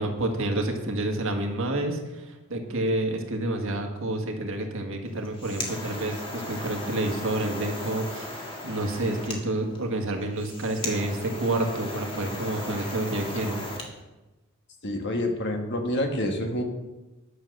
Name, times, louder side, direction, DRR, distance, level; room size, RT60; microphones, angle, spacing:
voice 1, 0.0-13.6, right 1 dB, 65° right, 3 dB, 1.7 m, -29 dB
sound 1, 5.1-13.9, left 1 dB, 25° left, 1.8 m, -37 dB
voice 2, 14.8-16.6, left 1 dB, 55° left, 4 dB, 1.5 m, -27 dB
10.5 x 7.0 x 6.5 m, 1.1 s
head